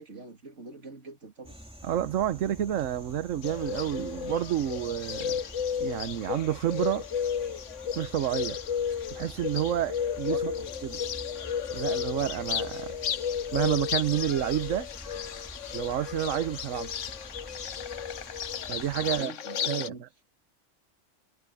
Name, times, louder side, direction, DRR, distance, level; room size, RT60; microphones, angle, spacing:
voice 1, 0.0-1.6 10.3-10.7 19.0-20.0, right 3 dB, 70° right, 3.2 m, -43 dB
sound 1, 1.4-19.2, equal, 5° right, 3.1 m, -47 dB
voice 2, 1.8-5.4 5.8-7.1 8.0-8.6 9.1-10.5 10.8-10.9 11.7-13.0 13.5-14.9 15.7-16.9 18.7-19.3 19.7-20.1, right 11 dB, 85° right, 1.2 m, -29 dB
Bird, 3.4-19.9, left 8 dB, 75° left, 1.2 m, -33 dB
omnidirectional pair, 1.3 m